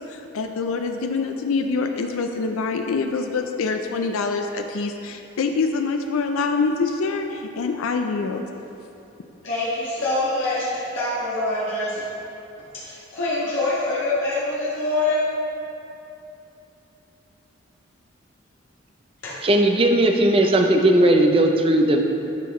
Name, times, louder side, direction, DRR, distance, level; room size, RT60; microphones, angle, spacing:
voice 1, 0.0-8.4, left 4 dB, 85° left, 5 dB, 0.4 m, -25 dB
voice 2, 9.4-12.0 12.8-15.2 19.2-19.3, left 2 dB, 70° left, -10 dB, 1.6 m, -25 dB
voice 3, 19.4-22.0, right 1 dB, 25° right, 3 dB, 0.5 m, -17 dB
10.5 x 5.7 x 3.1 m, 2.8 s
head